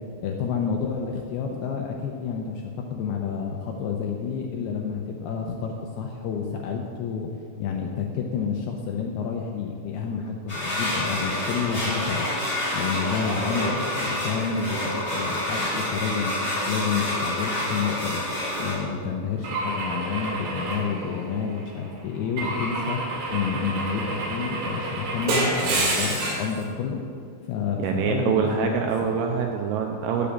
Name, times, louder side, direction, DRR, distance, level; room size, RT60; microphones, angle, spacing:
voice 1, 0.2-7.3 7.6-12.3 12.7-16.4 16.7-18.2 18.6-23.0 23.3-27.0 27.4-29.2, left 6 dB, 80° left, 2 dB, 2.3 m, -29 dB
sound 1, 10.5-18.7, left 1 dB, 15° left, 2.6 m, -28 dB
Car / Engine / Glass, 19.4-21.7 22.4-26.5, right 2 dB, 60° right, 4.3 m, -28 dB
voice 2, 27.8-30.3, right 6 dB, 85° right, 3 dB, 2.3 m, -25 dB
8.5 x 8.4 x 7.2 m, 2.5 s
omnidirectional pair, 5.2 m